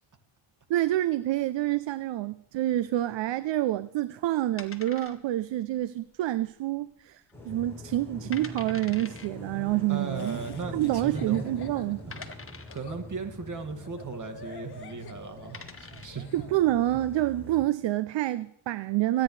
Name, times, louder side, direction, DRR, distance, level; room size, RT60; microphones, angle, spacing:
voice 1, 0.7-7.2 7.5-10.4 10.7-12.0 16.3-19.2, right 14 dB, 60° right, 0.6 m, -27 dB
sound 1, 4.6-5.5 5.8-5.9 6.5-6.9 7.3-7.4 8.0-8.1 8.3-9.3 10.4-10.5 11.2-11.3 12.1-12.9 14.8-15.0 15.3-16.2, left 4 dB, 25° left, 1.5 m, -44 dB
sound 2, 7.3-17.6, left 1 dB, 5° left, 7.0 m, -43 dB
voice 2, 9.9-11.5 12.1-16.3, right 4 dB, 35° right, 2.2 m, -37 dB
Laughter, 10.1-16.5, left 4 dB, 50° left, 1.7 m, -48 dB
24.5 x 10.0 x 3.3 m
cardioid pair, 85°, 50 cm